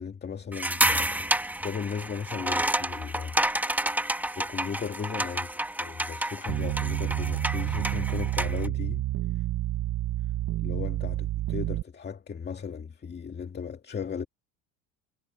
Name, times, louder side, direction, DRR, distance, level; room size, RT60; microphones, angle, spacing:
voice 1, 0.0-1.3 1.6-3.4 4.4-9.0 9.4-9.5 10.6-14.3, left 6 dB, 25° left, 2.3 m, -36 dB
sound 1, 0.5-8.7, right 1 dB, 5° right, 1.8 m, -29 dB
sound 2, 6.5-11.8, right 15 dB, 50° right, 1.6 m, -29 dB
supercardioid pair, 110°, 39 cm